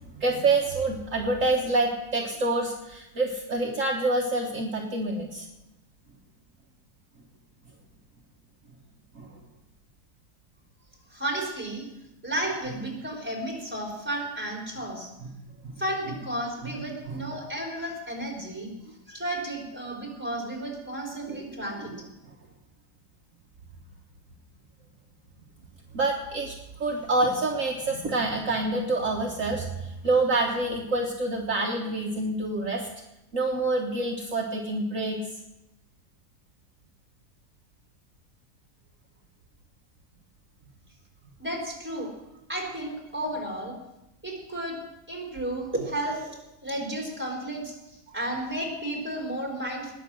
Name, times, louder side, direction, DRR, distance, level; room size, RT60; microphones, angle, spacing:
voice 1, 0.1-5.5 9.1-9.3 12.7-12.8 15.2-15.3 16.6-17.3 21.2-21.4 21.7-22.1 25.9-32.9 33.3-35.4, right 2 dB, 55° right, 0 dB, 1.6 m, -27 dB
voice 2, 11.1-11.9 12.2-15.1 15.8-18.7 19.1-21.9 41.4-42.1 42.5-43.7 44.2-44.8 45.1-49.9, right 1 dB, 5° right, -1 dB, 3.9 m, -33 dB
20.0 x 7.4 x 6.2 m, 0.91 s
omnidirectional pair, 1.7 m